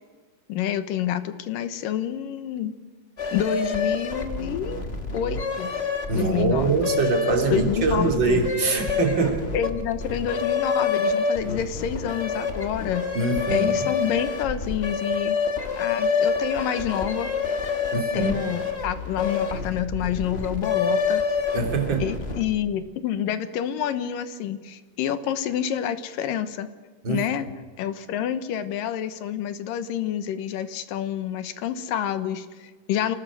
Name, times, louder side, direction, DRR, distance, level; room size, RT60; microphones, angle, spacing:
voice 1, 0.5-2.7 3.3-4.8 5.1-5.7 6.1-6.7 7.5-8.4 9.5-13.1 13.5-15.4 15.8-17.3 18.1-21.2 22.0-26.7 27.1-27.5 27.8-33.2, left 9 dB, 85° left, 11 dB, 2.8 m, -28 dB
sound 1, 3.2-22.6, left 5 dB, 30° left, 1.2 m, -27 dB
voice 2, 6.1-9.4 13.1-13.9 17.9-18.4 21.5-22.1 27.0-27.2, right 4 dB, 35° right, 3 dB, 3.3 m, -24 dB
28.0 x 18.0 x 6.2 m, 1.4 s
omnidirectional pair, 3.9 m